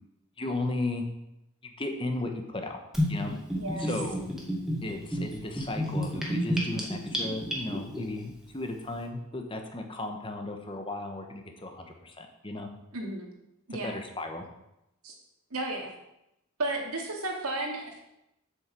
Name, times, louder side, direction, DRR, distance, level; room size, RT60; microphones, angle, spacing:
voice 1, 0.4-1.0 1.6-2.8 3.1-3.3 3.8-4.2 4.8-12.7 13.8-14.5, left 2 dB, 25° left, 4 dB, 1.2 m, -35 dB
Gurgling / Bathtub (filling or washing), 2.9-8.0, equal, ahead, 2.0 m, -30 dB
voice 2, 3.6-3.9 12.9-13.3 13.7-14.0 15.0-15.1 15.5-15.9 16.6-18.0, right 2 dB, 85° right, 0 dB, 2.5 m, -33 dB
7.9 x 6.4 x 7.6 m, 0.86 s
head